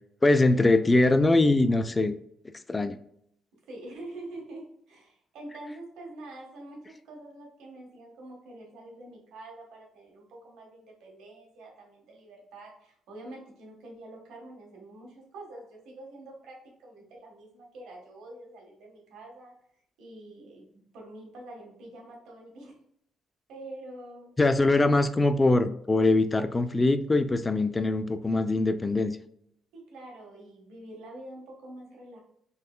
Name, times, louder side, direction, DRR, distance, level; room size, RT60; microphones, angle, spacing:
voice 1, 0.2-2.1 2.7-3.0 24.4-29.2, left 2 dB, 20° left, 11 dB, 0.3 m, -22 dB
voice 2, 3.7-19.6 20.0-22.8 23.5-24.3 29.7-32.2, right 1 dB, 85° right, -1 dB, 1.4 m, -46 dB
3.7 x 3.1 x 2.2 m, 0.71 s
cardioid pair, 115°, 0 cm